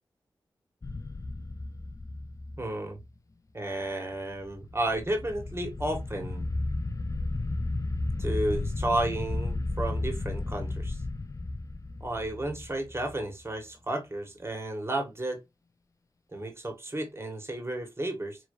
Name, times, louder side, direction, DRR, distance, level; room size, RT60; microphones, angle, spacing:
sound 1, 0.8-3.1 4.5-13.4, left 2 dB, 35° left, 0.6 m, -33 dB
voice 1, 2.6-3.0 3.5-6.5 8.2-11.0 12.0-15.4 16.3-18.4, right 1 dB, 30° right, 1.8 m, -32 dB
5.0 x 2.9 x 2.7 m
cardioid pair, 50°, 9 cm